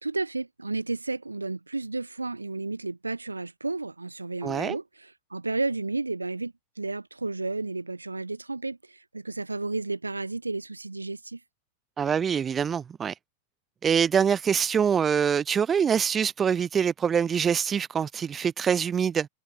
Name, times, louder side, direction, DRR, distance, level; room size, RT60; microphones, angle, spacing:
voice 1, 0.0-11.4, right 3 dB, 80° right, 3.0 m, -32 dB
voice 2, 4.4-4.8 12.0-13.1 13.8-19.3, right 7 dB, 20° right, 1.5 m, -24 dB
figure-of-eight pair, 90°, 0 cm